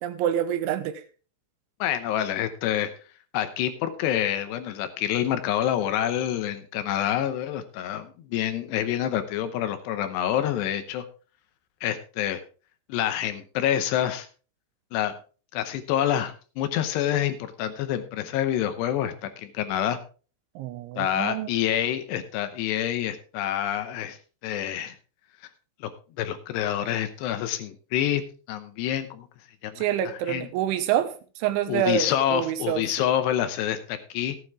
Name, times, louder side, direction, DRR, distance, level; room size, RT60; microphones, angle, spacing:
voice 1, 0.0-1.0 20.6-21.5 29.8-31.1 31.4-32.8, right 10 dB, 90° right, 9 dB, 3.3 m, -27 dB
voice 2, 1.8-2.9 3.3-11.1 11.8-12.4 12.9-14.3 14.9-15.2 15.5-20.0 21.0-24.2 24.4-25.0 25.8-25.9 26.2-28.2 28.5-29.3 29.6-30.5 31.7-34.4, left 11 dB, 75° left, 10 dB, 2.7 m, -27 dB
14.5 x 9.3 x 3.5 m, 0.37 s
omnidirectional pair, 5.4 m